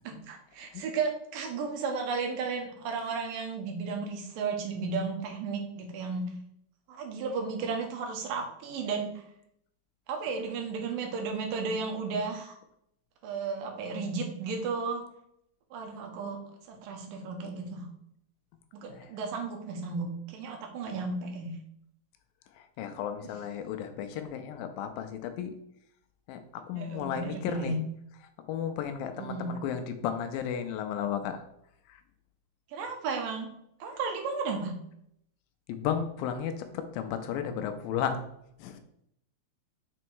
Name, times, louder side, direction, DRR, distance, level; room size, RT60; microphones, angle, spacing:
voice 1, 0.0-6.2 6.9-9.1 10.1-12.6 13.2-15.0 15.7-16.4 16.7-17.9 18.7-21.6 26.7-27.8 29.2-29.5 32.7-33.5 33.8-34.7, right 4 dB, 70° right, 3 dB, 2.6 m, -34 dB
voice 2, 22.5-25.5 26.3-27.8 28.1-31.4 31.9-32.0 35.7-38.2 38.6-38.8, left 8 dB, 80° left, 7 dB, 2.3 m, -34 dB
6.2 x 4.3 x 4.6 m, 0.73 s
omnidirectional pair, 4.2 m